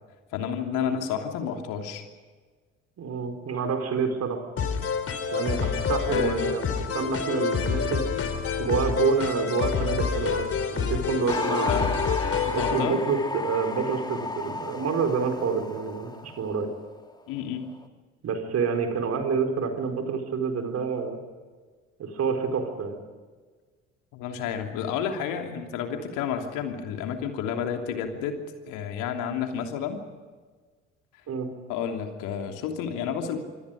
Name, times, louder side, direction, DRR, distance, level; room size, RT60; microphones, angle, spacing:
voice 1, 0.3-2.0 6.1-6.5 11.5-11.9 12.5-13.0 17.3-17.7 24.1-28.4 28.6-30.0 31.7-33.4, left 8 dB, 60° left, 4 dB, 3.0 m, -30 dB
voice 2, 3.0-4.4 5.3-6.7 6.9-8.0 8.6-11.8 12.5-16.7 18.2-21.2 22.0-23.0 31.3-31.5, right 5 dB, 45° right, 5 dB, 4.6 m, -28 dB
sound 1, 4.6-12.8, left 6 dB, 40° left, 3.4 m, -28 dB
sound 2, 11.3-17.1 17.4-17.8, left 3 dB, 10° left, 2.3 m, -33 dB
26.0 x 25.0 x 5.1 m, 1.4 s
figure-of-eight pair, 55°, 35 cm